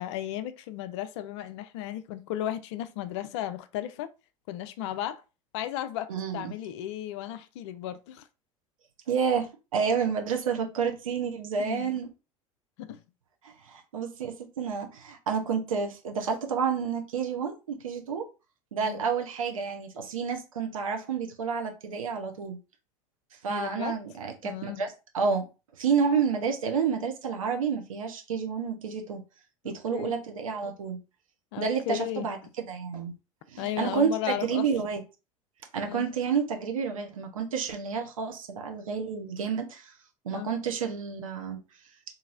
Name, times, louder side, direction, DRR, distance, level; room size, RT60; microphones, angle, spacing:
voice 1, 0.0-4.1 4.5-5.2 5.5-8.3 11.6-12.0 12.8-13.0 18.8-19.0 23.5-24.0 24.4-24.8 29.6-30.1 31.5-32.3 33.6-34.7 35.8-36.0 40.3-40.5, left 12 dB, 55° left, 0.4 m, -35 dB
voice 2, 6.1-6.5 9.1-12.1 13.4-18.3 18.7-22.6 23.4-25.4 25.8-29.2 29.6-31.0 31.6-33.1 33.5-34.1 34.4-35.0 35.7-39.9 40.2-41.6, right 6 dB, 70° right, 0.7 m, -30 dB
2.9 x 2.6 x 2.5 m
figure-of-eight pair, 70°, 18 cm